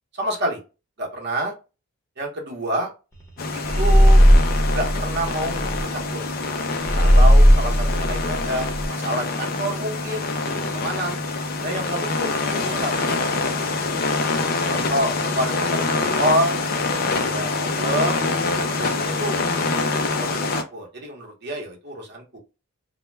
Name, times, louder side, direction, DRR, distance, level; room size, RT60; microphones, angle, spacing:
voice 1, 0.2-0.6 1.0-1.5 2.2-2.9 3.5-4.2 4.7-5.6 5.9-6.2 6.9-11.2 11.6-13.6 14.7-16.7 17.2-18.2 18.7-19.4 19.7-22.4, right 1 dB, 50° right, -1 dB, 0.8 m, -28 dB
sound 1, 3.4-20.6, left 3 dB, 40° left, 0.3 m, -25 dB
sound 2, 3.6-5.8 6.8-8.8, equal, 15° left, 0.7 m, -16 dB
2.1 x 2.1 x 3.1 m, 0.30 s
head